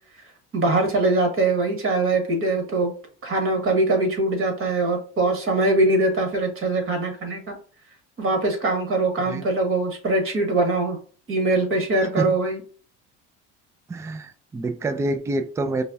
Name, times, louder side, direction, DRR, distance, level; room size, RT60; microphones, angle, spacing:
voice 1, 0.5-2.9 3.2-7.6 8.2-11.0 11.3-12.6, right 2 dB, 40° right, 3 dB, 1.6 m, -22 dB
voice 2, 13.9-15.8, right 2 dB, 10° right, 8 dB, 0.3 m, -27 dB
5.4 x 2.3 x 2.6 m, 0.42 s
supercardioid pair, 85°, 34 cm